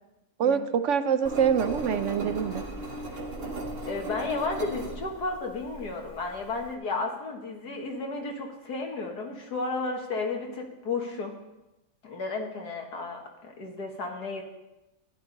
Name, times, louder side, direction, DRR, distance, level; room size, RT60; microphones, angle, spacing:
voice 1, 0.4-2.6, right 7 dB, 65° right, 11 dB, 0.8 m, -25 dB
Engine, 1.2-6.7, right 1 dB, 40° right, 1.8 m, -37 dB
voice 2, 3.9-11.3 12.0-14.4, left 3 dB, 75° left, 2 dB, 2.1 m, -33 dB
15.0 x 11.0 x 4.0 m, 0.97 s
omnidirectional pair, 1.7 m